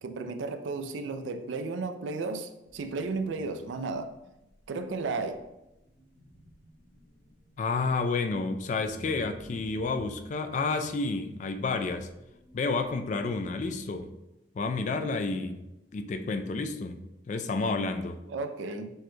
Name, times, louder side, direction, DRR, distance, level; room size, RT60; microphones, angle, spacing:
voice 1, 0.0-4.1 4.7-5.4 18.3-18.9, right 3 dB, 90° right, 9 dB, 0.4 m, -34 dB
sound 1, 2.6-14.1, equal, 80° left, 1.1 m, -54 dB
voice 2, 7.6-12.1 12.5-14.1 14.6-15.7 15.9-17.0 17.3-18.2, left 3 dB, 40° left, 7 dB, 0.3 m, -30 dB
6.2 x 2.2 x 3.1 m, 0.93 s
head